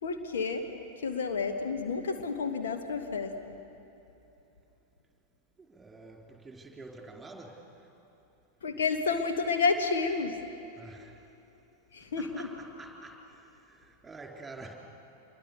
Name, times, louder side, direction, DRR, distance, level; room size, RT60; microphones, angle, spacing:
voice 1, 0.0-0.7 1.0-3.3 8.6-10.4 11.9-12.5, left 4 dB, 60° left, 5 dB, 1.6 m, -30 dB
voice 2, 5.6-7.6 10.8-11.1 12.2-14.7, right 3 dB, 10° right, 1 dB, 4.1 m, -48 dB
27.5 x 22.5 x 6.9 m, 2.9 s
figure-of-eight pair, 90°, 0 cm